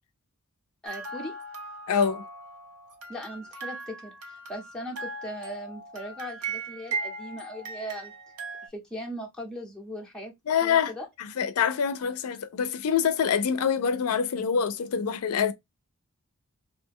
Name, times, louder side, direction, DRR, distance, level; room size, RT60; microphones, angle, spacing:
voice 1, 0.8-1.3 3.1-8.1 8.6-10.3 10.6-11.1, equal, 5° left, 0.8 m, -39 dB
sound 1, 0.9-8.7, right 3 dB, 85° right, 0.7 m, -38 dB
voice 2, 1.9-2.2 10.5-10.9 11.2-15.5, left 7 dB, 80° left, 0.4 m, -25 dB
2.7 x 2.1 x 3.5 m
head